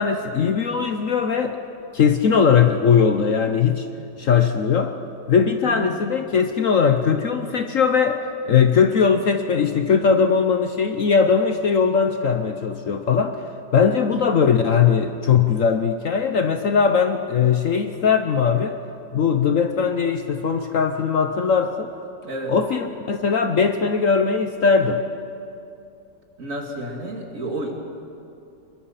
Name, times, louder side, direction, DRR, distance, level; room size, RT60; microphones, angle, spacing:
voice 1, 0.0-1.6 1.9-3.9 4.2-5.0 5.3-13.4 13.7-18.8 19.1-21.9 22.5-25.0, left 6 dB, 55° left, 7 dB, 1.1 m, -19 dB
voice 2, 22.2-22.5 26.4-27.8, right 1 dB, 50° right, 2 dB, 2.6 m, -31 dB
22.5 x 22.0 x 5.8 m, 2.6 s
omnidirectional pair, 1.9 m